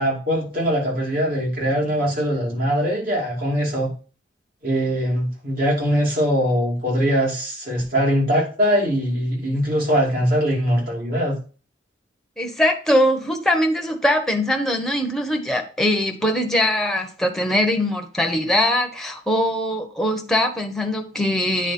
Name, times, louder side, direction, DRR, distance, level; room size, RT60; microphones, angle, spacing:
voice 1, 0.0-3.9 4.6-11.4, equal, 55° right, -2 dB, 2.8 m, -22 dB
voice 2, 12.4-21.7, left 1 dB, 5° left, 3 dB, 1.1 m, -21 dB
9.0 x 4.2 x 4.3 m, 0.37 s
head